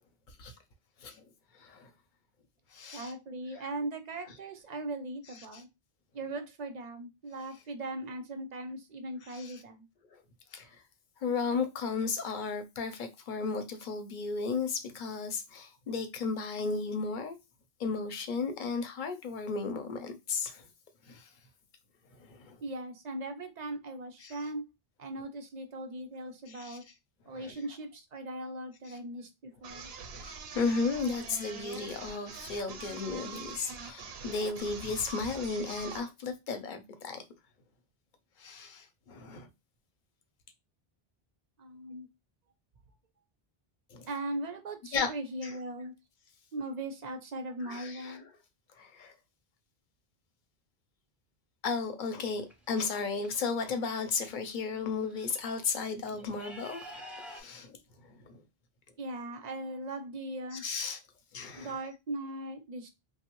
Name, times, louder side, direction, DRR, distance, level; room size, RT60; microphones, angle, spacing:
voice 1, 1.5-1.9 2.7-3.1 5.5-5.6 9.2-9.6 10.5-10.8 11.2-17.4 17.8-20.6 21.1-21.3 22.2-22.6 24.2-24.4 26.5-26.8 27.3-27.5 30.2-37.2 38.4-39.5 43.9-44.1 44.9-45.1 45.4-45.6 47.6-48.2 48.8-49.1 51.6-56.8 57.3-57.8 58.3-58.4 60.5-61.0 61.3-61.7, left 4 dB, 55° left, 0.7 m, -34 dB
voice 2, 2.9-5.7 6.1-9.9 22.6-24.6 25.0-26.8 27.3-29.9 41.6-42.1 44.1-45.9 46.5-48.3 59.0-60.6 61.6-62.9, right 2 dB, 55° right, 0.5 m, -39 dB
sound 1, 29.6-36.1, right 5 dB, 80° right, 0.8 m, -44 dB
sound 2, 52.2-53.3 54.4-54.5 54.8-57.4, equal, ahead, 0.4 m, -49 dB
3.0 x 2.0 x 2.9 m
omnidirectional pair, 1.0 m